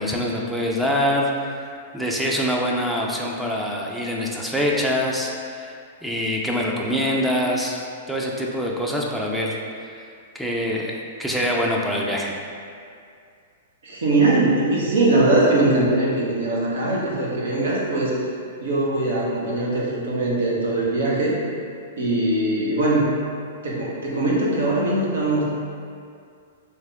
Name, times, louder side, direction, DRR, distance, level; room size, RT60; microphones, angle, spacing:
voice 1, 0.0-1.7 1.9-5.7 6.0-7.8 8.1-10.0 10.3-10.9 11.2-12.4, equal, ahead, -3 dB, 0.4 m, -24 dB
voice 2, 13.8-18.1 18.6-21.4 22.0-23.0 23.6-25.4, right 2 dB, 75° right, -5 dB, 1.0 m, -21 dB
3.3 x 2.9 x 3.4 m, 2.3 s
hypercardioid pair, 115°, 0 cm